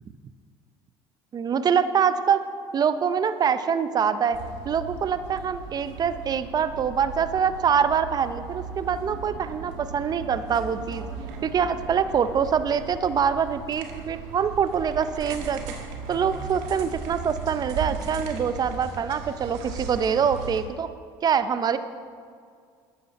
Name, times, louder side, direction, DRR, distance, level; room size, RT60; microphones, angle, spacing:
voice 1, 1.3-2.4 2.7-4.4 4.7-11.0 11.4-15.6 16.1-20.9 21.2-21.8, right 7 dB, 35° right, 12 dB, 0.6 m, -24 dB
sound 1, 4.3-20.6, right 5 dB, 80° right, 1.4 m, -37 dB
12.5 x 9.4 x 4.2 m, 2.1 s
supercardioid pair, 90°, 11 cm